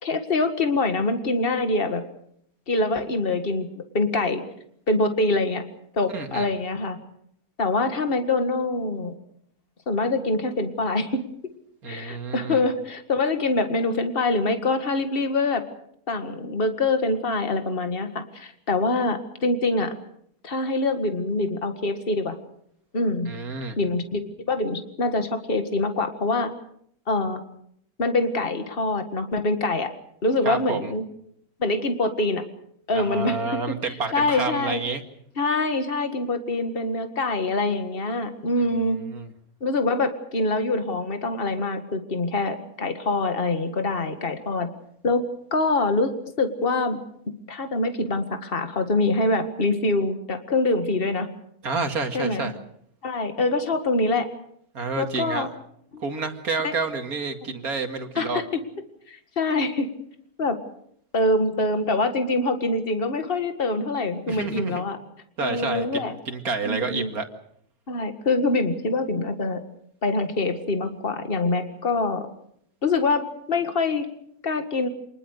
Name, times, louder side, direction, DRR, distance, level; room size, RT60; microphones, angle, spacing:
voice 1, 0.0-2.0 2.7-4.4 4.9-5.6 5.9-7.0 7.6-9.1 9.9-11.2 11.9-15.6 16.1-19.9 20.4-22.4 22.9-23.3 23.8-24.2 24.5-26.5 27.1-27.4 28.0-29.9 30.2-31.0 31.6-32.4 32.9-33.4 33.9-34.8 35.4-39.0 39.6-44.7 45.0-45.2 45.5-46.1 46.4-47.0 47.5-51.3 52.1-52.5 53.0-54.3 55.0-55.5 55.9-56.0 56.6-56.7 57.5-57.6 58.2-58.4 59.1-59.9 60.4-60.6 61.1-65.0 65.4-66.1 66.6-67.1 67.9-69.6 70.0-72.3 72.8-74.1 74.4-74.9, left 2 dB, 35° left, 8 dB, 2.1 m, -24 dB
voice 2, 6.1-6.5 11.8-12.6 23.3-23.8 30.5-30.9 32.9-35.0 39.0-39.3 51.6-52.5 54.7-55.5 56.0-58.4 64.3-64.8 65.4-67.3, right 4 dB, 70° right, 6 dB, 2.6 m, -29 dB
27.0 x 20.0 x 6.7 m, 0.70 s
omnidirectional pair, 1.6 m